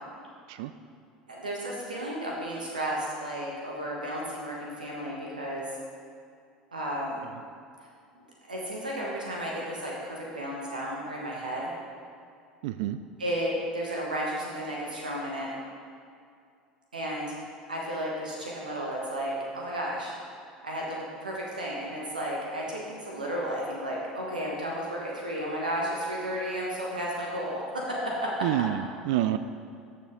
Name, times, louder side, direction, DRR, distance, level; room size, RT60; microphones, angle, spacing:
voice 1, 1.3-5.6 6.7-7.2 8.5-11.7 13.2-15.5 16.9-17.3 17.7-20.1 20.6-28.5, equal, 85° right, -3 dB, 1.4 m, -33 dB
voice 2, 12.6-13.0 28.4-29.4, right 13 dB, 60° right, 11 dB, 0.3 m, -28 dB
13.0 x 7.0 x 3.7 m, 2.4 s
figure-of-eight pair, 70°, 4 cm